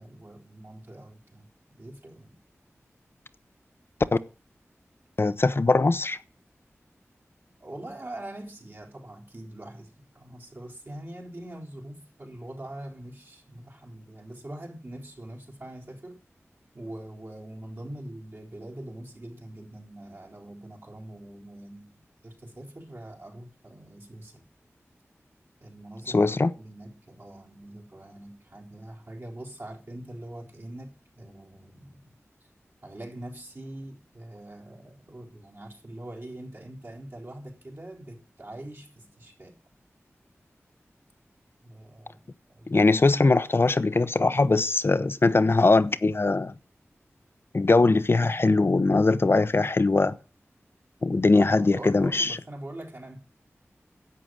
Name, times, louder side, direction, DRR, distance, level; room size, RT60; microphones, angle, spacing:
voice 1, 0.0-2.4 7.6-16.2 16.7-21.9 22.2-24.4 25.6-26.2 26.6-32.1 32.8-39.6 41.6-42.2 42.5-43.0 51.3-53.2, right 1 dB, 50° right, 4.0 m, -43 dB
voice 2, 5.2-6.2 26.1-26.5 42.7-46.5 47.5-50.2 51.0-52.4, left 3 dB, 50° left, 0.8 m, -21 dB
11.0 x 7.7 x 8.9 m
wide cardioid pair, 65°, 5 cm